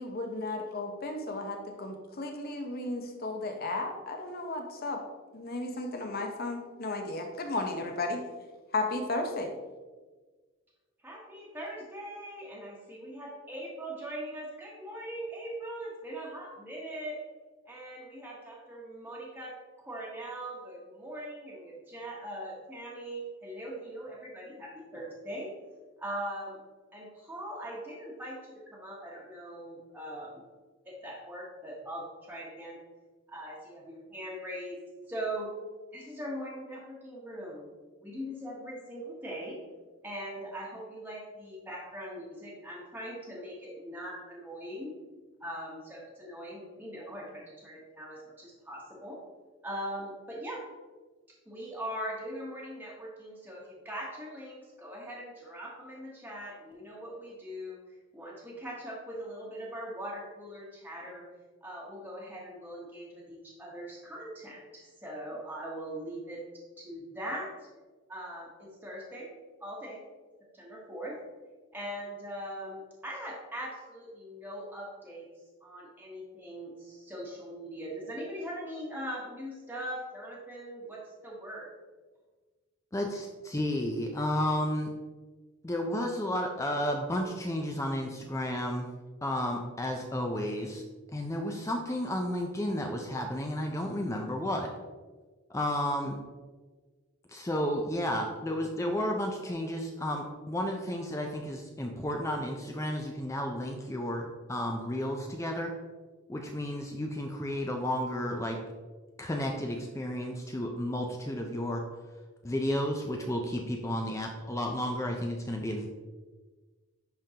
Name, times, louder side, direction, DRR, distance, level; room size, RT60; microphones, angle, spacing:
voice 1, 0.0-5.0 5.3-8.2 8.7-9.5, left 2 dB, 45° left, 4 dB, 0.8 m, -34 dB
voice 2, 11.0-17.2 17.7-25.5 26.0-26.6 26.9-30.4 30.8-32.8 33.3-34.8 35.1-35.5 35.9-37.7 38.0-39.6 40.0-44.9 45.4-49.2 49.6-50.6 51.5-57.8 58.1-61.3 61.6-66.4 66.8-67.5 68.1-69.3 69.6-70.0 70.5-71.2 71.7-75.2 75.6-81.7, right 1 dB, 10° right, -5 dB, 1.1 m, -41 dB
voice 3, 82.9-84.9 85.6-88.9 89.2-90.8 91.1-94.7 95.5-96.2 97.3-105.7 106.3-108.6 109.2-111.8 112.4-115.9, left 1 dB, 15° left, 2 dB, 0.4 m, -32 dB
10.5 x 3.7 x 2.8 m, 1.3 s
head